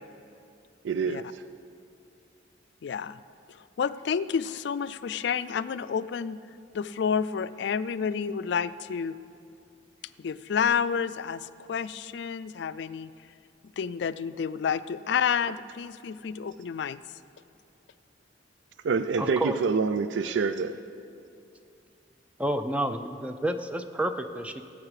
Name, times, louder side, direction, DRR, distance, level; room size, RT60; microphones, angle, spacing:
voice 1, 0.8-1.4 18.8-20.8, right 5 dB, 75° right, 11 dB, 0.4 m, -27 dB
voice 2, 2.8-3.2 3.5-6.4 6.7-9.2 10.2-13.1 13.8-17.0, left 7 dB, 60° left, 15 dB, 0.3 m, -30 dB
voice 3, 19.2-19.6 22.4-24.6, right 1 dB, 5° right, 8 dB, 0.4 m, -30 dB
16.5 x 8.4 x 4.9 m, 2.5 s
head